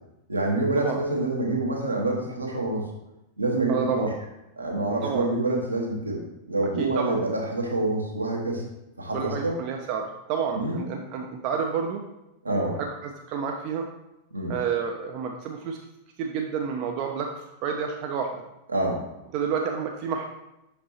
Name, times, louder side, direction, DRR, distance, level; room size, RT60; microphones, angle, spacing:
voice 1, 0.3-2.9 3.4-4.1 4.6-6.2 6.5-8.6 9.0-9.6 10.5-10.8 12.4-12.8 14.3-14.5 18.7-19.0, right 2 dB, 80° right, -1 dB, 1.4 m, -26 dB
voice 2, 3.7-4.1 5.0-5.3 6.8-7.2 9.1-12.0 12.8-13.9 14.5-15.8 16.2-18.3 19.3-20.2, right 6 dB, 40° right, 2 dB, 0.6 m, -29 dB
6.3 x 5.1 x 2.9 m, 0.90 s
figure-of-eight pair, 90°, 0 cm